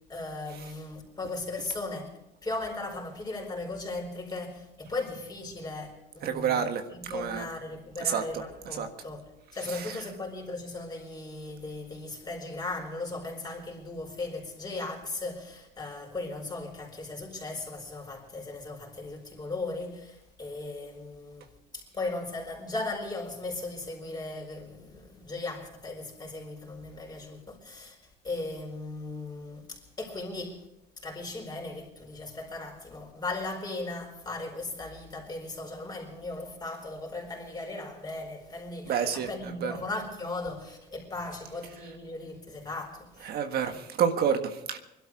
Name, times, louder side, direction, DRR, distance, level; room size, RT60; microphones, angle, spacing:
voice 1, 0.1-2.1 2.4-9.2 9.5-28.0 28.2-30.7 31.0-43.4 43.6-43.8, left 2 dB, 25° left, 4.7 m, -37 dB
voice 2, 6.2-7.5 8.0-8.2 8.8-8.9 9.7-10.0 38.9-39.7 43.2-44.8, right 8 dB, 65° right, 1.6 m, -29 dB
22.0 x 12.5 x 4.8 m
cardioid pair, 110°, 17 cm